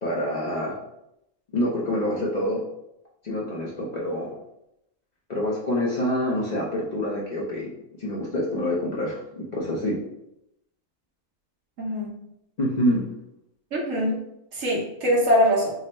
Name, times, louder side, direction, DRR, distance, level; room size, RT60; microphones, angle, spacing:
voice 1, 0.0-0.8 1.5-2.6 3.2-4.3 5.3-7.7 8.0-10.0 12.6-13.0, left 1 dB, 50° left, -4 dB, 0.5 m, -26 dB
voice 2, 11.8-12.1 13.7-14.2 14.5-15.7, equal, 65° right, -3 dB, 1.2 m, -22 dB
3.8 x 2.1 x 4.1 m, 0.83 s
omnidirectional pair, 1.5 m